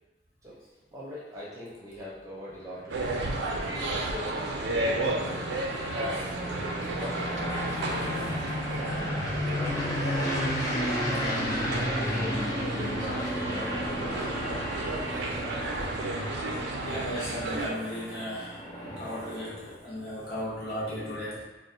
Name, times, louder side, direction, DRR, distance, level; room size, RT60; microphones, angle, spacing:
voice 1, 0.9-3.1 3.7-5.3 5.8-7.8 9.5-10.4 11.1-11.5 11.9-12.4 12.7-15.2, left 1 dB, 20° right, -7 dB, 0.7 m, -42 dB
sound 1, 2.5-19.7, equal, 20° left, 0.4 m, -33 dB
sound 2, 2.9-17.7, right 2 dB, 85° right, 0.4 m, -33 dB
voice 2, 16.8-21.4, equal, 60° left, -9 dB, 1.1 m, -36 dB
2.3 x 2.2 x 3.8 m, 1.1 s
head